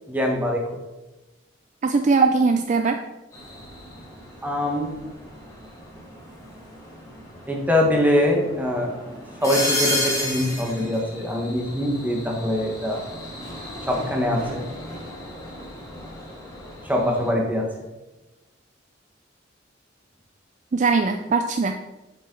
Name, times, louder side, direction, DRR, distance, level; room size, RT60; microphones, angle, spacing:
voice 1, 0.1-0.6 4.4-4.9 7.5-13.1 13.9-14.6 16.8-17.7, left 1 dB, 10° right, 0 dB, 1.4 m, -23 dB
voice 2, 1.8-3.0 20.7-21.8, right 4 dB, 40° right, 6 dB, 0.4 m, -20 dB
sound 1, 3.3-17.3, left 1 dB, 15° left, 2.2 m, -33 dB
7.6 x 7.3 x 3.9 m, 1.0 s
head